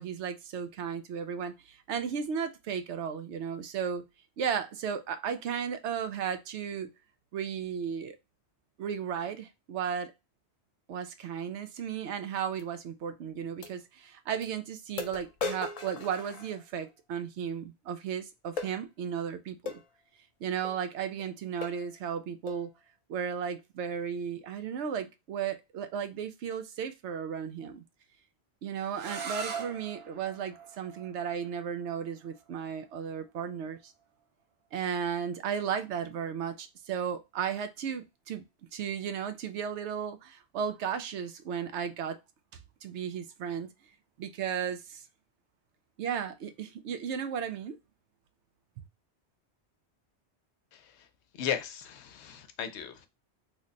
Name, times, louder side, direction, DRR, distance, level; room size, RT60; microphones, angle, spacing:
voice 1, 0.0-4.0 4.4-6.9 7.3-8.2 8.8-10.1 10.9-19.8 20.4-22.7 23.1-27.8 28.6-33.9 34.7-38.4 38.7-42.2 42.8-43.7 44.2-45.0 46.0-47.8, right 7 dB, 85° right, 0.9 m, -35 dB
sound 1, 12.6-12.7 13.6-13.7 14.4-14.5 15.0-16.9 18.6-18.8 19.7-19.9 20.6-20.8 21.2-21.3 21.6-21.9 22.5-22.7, left 4 dB, 60° left, 0.4 m, -38 dB
sound 2, 28.9-34.7, right 5 dB, 70° right, 1.0 m, -43 dB
voice 2, 50.7-51.1 51.4-53.1, left 9 dB, 80° left, 0.9 m, -36 dB
3.2 x 2.1 x 3.7 m
omnidirectional pair, 1.1 m